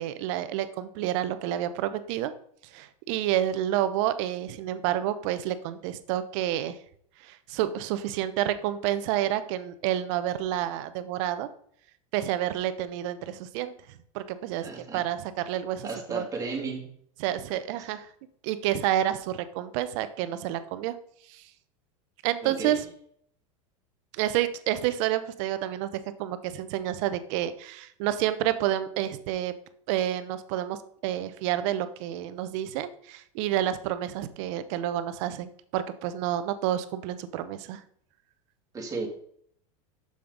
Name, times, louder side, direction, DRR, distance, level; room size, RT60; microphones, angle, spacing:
voice 1, 0.0-2.3 2.7-6.8 7.2-11.5 12.1-13.7 14.1-16.2 17.2-18.1 18.4-20.9 21.3-21.4 22.2-22.8 24.2-29.5 29.9-37.8, right 12 dB, 60° right, 12 dB, 0.8 m, -29 dB
voice 2, 14.6-15.0 15.8-16.9 22.4-22.8 38.7-39.1, right 4 dB, 20° right, 0 dB, 2.3 m, -34 dB
6.9 x 6.5 x 3.9 m, 0.65 s
hypercardioid pair, 110°, 17 cm